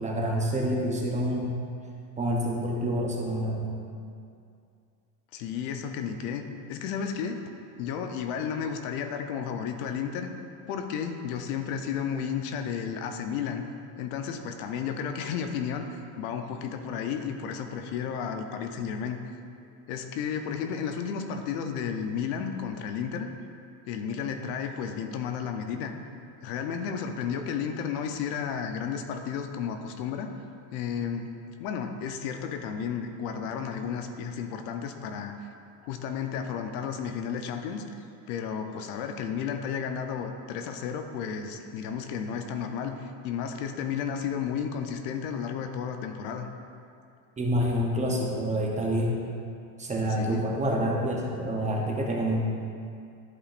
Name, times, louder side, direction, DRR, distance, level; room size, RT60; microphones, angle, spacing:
voice 1, 0.0-1.6 2.2-3.8 47.4-49.2 49.8-52.4, equal, 15° right, -1 dB, 0.7 m, -27 dB
voice 2, 5.3-7.4 7.8-10.3 10.7-13.6 14.0-15.9 16.2-19.3 19.9-23.3 23.9-25.9 26.4-30.3 30.7-31.3 31.6-35.3 35.8-37.8 38.3-46.5 50.1-50.4, left 7 dB, 75° left, 6 dB, 0.8 m, -33 dB
11.5 x 5.1 x 2.5 m, 2.4 s
supercardioid pair, 135°, 46 cm